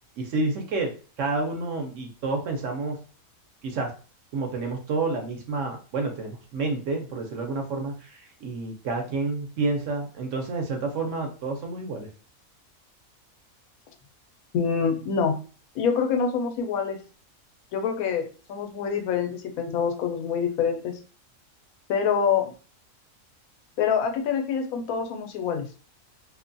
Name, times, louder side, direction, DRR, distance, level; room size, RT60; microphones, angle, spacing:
voice 1, 0.2-3.0 3.6-3.9 4.3-12.1, right 3 dB, 70° right, 3 dB, 0.9 m, -29 dB
voice 2, 14.5-15.4 15.7-17.0 17.7-21.0 21.9-22.5 23.8-25.7, left 6 dB, 85° left, 5 dB, 1.0 m, -26 dB
2.6 x 2.2 x 2.5 m, 0.37 s
omnidirectional pair, 1.5 m